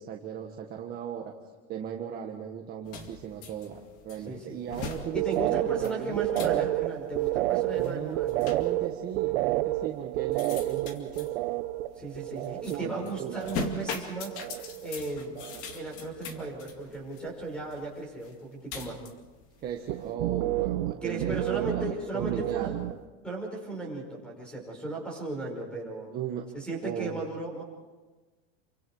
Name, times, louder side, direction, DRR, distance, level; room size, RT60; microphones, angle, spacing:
voice 1, 0.0-1.3 1.7-6.3 7.8-11.3 12.3-13.4 19.6-21.9 22.1-22.8 26.1-26.4 26.8-27.2, right 9 dB, 25° right, 1 dB, 1.6 m, -37 dB
sound 1, 2.8-20.1, left 4 dB, 40° left, 2.4 m, -42 dB
voice 2, 4.3-4.6 5.1-8.4 12.0-14.4 14.8-15.4 15.7-19.0 21.0-22.7 23.2-26.1 26.5-27.6, right 2 dB, 5° left, 1 dB, 5.5 m, -36 dB
sound 2, 5.0-13.9 14.2-14.9 15.2-15.9 16.2-16.6 19.9-23.0, right 17 dB, 65° right, 0.9 m, -31 dB
29.0 x 24.5 x 4.8 m, 1.3 s
supercardioid pair, 165°, 35 cm